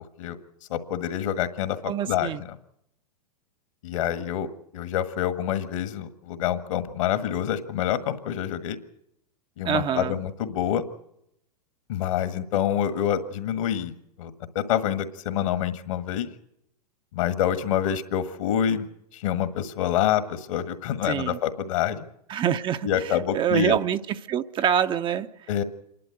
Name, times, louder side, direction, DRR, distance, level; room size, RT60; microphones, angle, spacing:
voice 1, 0.7-2.6 3.8-4.5 4.7-8.8 9.6-10.8 11.9-13.9 14.2-16.3 17.1-18.9 19.1-22.0 22.8-23.8 25.5-25.6, left 10 dB, 55° left, 10 dB, 1.7 m, -27 dB
voice 2, 1.9-2.4 9.6-10.2 21.1-21.4 22.3-24.0 24.3-25.3, right 9 dB, 25° right, 9 dB, 0.7 m, -25 dB
27.5 x 12.0 x 8.0 m, 0.78 s
figure-of-eight pair, 95°, 19 cm